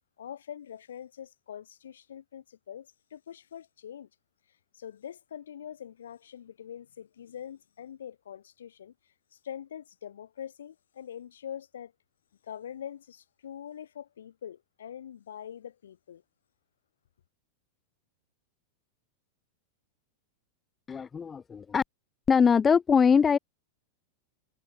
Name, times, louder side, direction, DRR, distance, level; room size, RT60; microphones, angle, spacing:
voice 1, 0.2-4.1 4.7-8.9 9.3-11.9 12.4-16.2, left 9 dB, 65° left, 6.6 m, -44 dB
voice 2, 20.9-21.8 22.3-23.4, left 6 dB, 20° left, 1.0 m, -22 dB
figure-of-eight pair, 90°, 0 cm